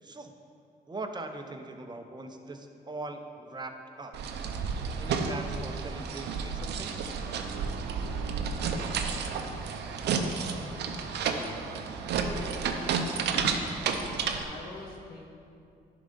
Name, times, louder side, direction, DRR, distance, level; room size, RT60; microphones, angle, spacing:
voice 1, 0.0-0.3 0.9-4.1 5.0-7.1, right 2 dB, 25° right, 5 dB, 0.8 m, -41 dB
sound 1, 4.1-14.4, right 5 dB, 75° right, 0.6 m, -31 dB
voice 2, 12.2-12.5 12.8-13.7 14.4-15.3, left 2 dB, 55° left, -2 dB, 1.3 m, -44 dB
11.0 x 3.9 x 5.3 m, 2.5 s
supercardioid pair, 65°, 18 cm